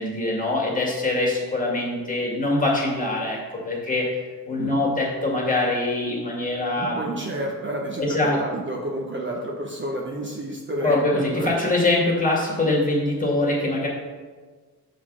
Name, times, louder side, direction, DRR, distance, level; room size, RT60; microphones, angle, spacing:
voice 1, 0.0-4.1 4.5-7.0 8.0-8.4 10.8-13.9, left 2 dB, 20° left, -3 dB, 2.0 m, -23 dB
voice 2, 6.7-11.5, right 1 dB, 30° right, -2 dB, 0.9 m, -30 dB
7.1 x 4.0 x 6.1 m, 1.4 s
wide cardioid pair, 130°, 38 cm